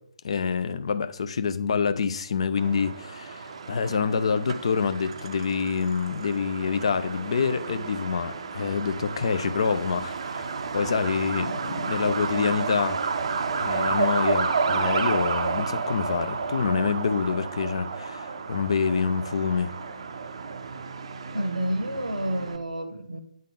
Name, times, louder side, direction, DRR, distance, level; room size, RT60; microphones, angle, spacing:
voice 1, 0.2-13.0 13.6-19.7, left 5 dB, 45° left, 0.5 m, -27 dB
Truck, 2.6-22.6, right 5 dB, 45° right, 0.5 m, -31 dB
voice 2, 21.3-23.2, right 1 dB, 70° right, 0.9 m, -29 dB
9.1 x 3.7 x 3.6 m
figure-of-eight pair, 140°, 4 cm